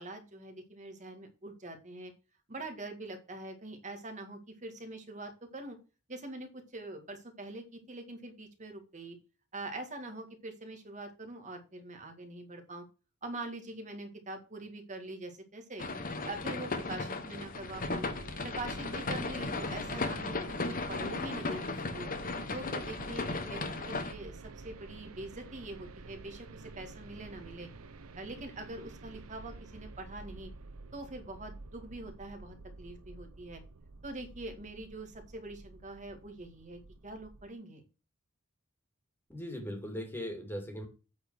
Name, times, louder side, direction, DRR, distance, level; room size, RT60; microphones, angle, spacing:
voice 1, 0.0-2.1 2.5-5.8 6.1-9.2 9.5-12.8 13.2-15.9 16.2-18.1 18.4-22.1 22.5-27.7 28.2-30.5 30.9-33.6 34.0-37.8, right 2 dB, 35° right, 5 dB, 2.0 m, -44 dB
sound 1, 15.8-24.1, left 3 dB, 40° left, 1.1 m, -36 dB
sound 2, 17.7-37.5, right 3 dB, 80° right, 0.8 m, -50 dB
voice 2, 39.3-40.9, equal, 10° left, 4 dB, 2.4 m, -39 dB
8.5 x 4.4 x 6.3 m, 0.32 s
head